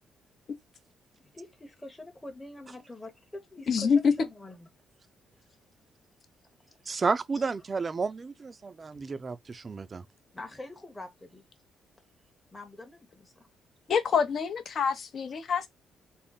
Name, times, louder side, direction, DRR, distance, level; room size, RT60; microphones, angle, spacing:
voice 1, 1.2-4.7 7.3-7.4 10.3-11.4 12.5-13.5, left 2 dB, 15° left, 0.9 m, -45 dB
voice 2, 3.7-4.0 13.9-15.7, left 6 dB, 55° left, 0.7 m, -26 dB
voice 3, 6.9-10.0, right 4 dB, 35° right, 0.4 m, -31 dB
3.6 x 2.1 x 3.9 m
cardioid pair, 90°, 0 cm